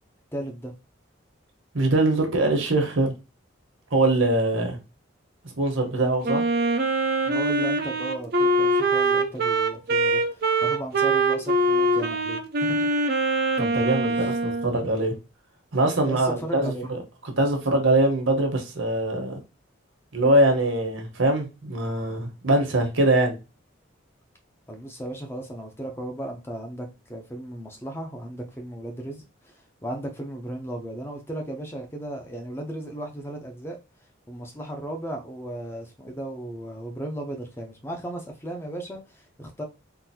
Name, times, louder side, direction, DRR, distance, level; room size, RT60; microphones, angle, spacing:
voice 1, 0.3-0.7 7.2-12.9 14.0-14.3 16.0-16.9 24.7-33.8 34.3-39.6, right 1 dB, 10° left, 0.6 m, -35 dB
voice 2, 1.7-3.1 3.9-4.8 5.4-6.4 13.6-15.1 15.7-17.0 17.4-19.4 20.1-23.3, right 2 dB, 80° right, 1.1 m, -23 dB
Wind instrument woodwind instrument, 6.2-14.7, right 2 dB, 50° right, 0.5 m, -23 dB
3.8 x 2.6 x 2.8 m
head